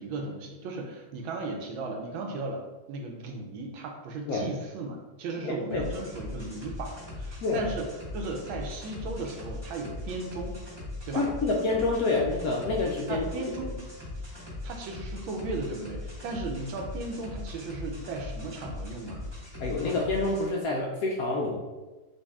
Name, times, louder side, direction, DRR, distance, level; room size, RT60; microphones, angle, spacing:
voice 1, 0.0-2.6 2.9-7.9 8.1-10.6 11.1-11.3 13.1-13.8 14.6-19.2, right 3 dB, 80° right, 2 dB, 1.4 m, -36 dB
voice 2, 5.4-5.9 7.4-7.6 11.1-13.2 19.6-21.6, left 3 dB, 85° left, -2 dB, 0.7 m, -27 dB
sound 1, 5.7-20.5, left 2 dB, 20° right, 0.8 m, -40 dB
5.2 x 2.6 x 3.5 m, 1.2 s
omnidirectional pair, 2.2 m